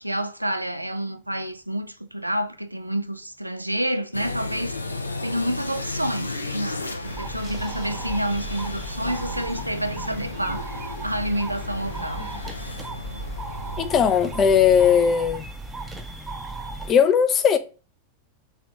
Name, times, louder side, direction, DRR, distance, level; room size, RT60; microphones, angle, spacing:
voice 1, 0.0-4.8 5.2-12.3, right 1 dB, 85° right, 0.3 m, -29 dB
sound 1, 4.1-15.0, left 3 dB, 80° left, 0.4 m, -34 dB
sound 2, 7.0-16.9, right 3 dB, 10° right, 0.7 m, -36 dB
voice 2, 13.8-15.4 16.9-17.6, left 7 dB, 30° left, 0.5 m, -18 dB
3.3 x 2.9 x 3.4 m
figure-of-eight pair, 90°, 0 cm